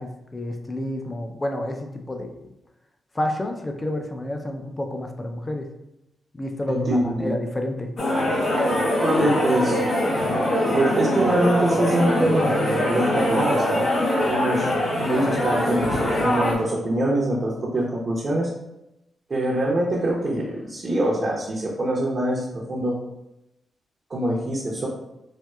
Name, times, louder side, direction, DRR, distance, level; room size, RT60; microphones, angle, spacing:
voice 1, 0.0-2.5 3.1-5.7 6.3-7.9, left 1 dB, 25° left, 4 dB, 0.5 m, -29 dB
voice 2, 6.7-7.3 9.0-9.8 10.7-13.8 14.2-14.7 15.0-18.5 19.3-23.0 24.1-24.9, right 1 dB, 45° right, -4 dB, 0.7 m, -24 dB
sound 1, 8.0-16.5, left 1 dB, 55° left, 0.8 m, -23 dB
4.2 x 2.2 x 2.3 m, 0.90 s
cardioid pair, 65°, 0 cm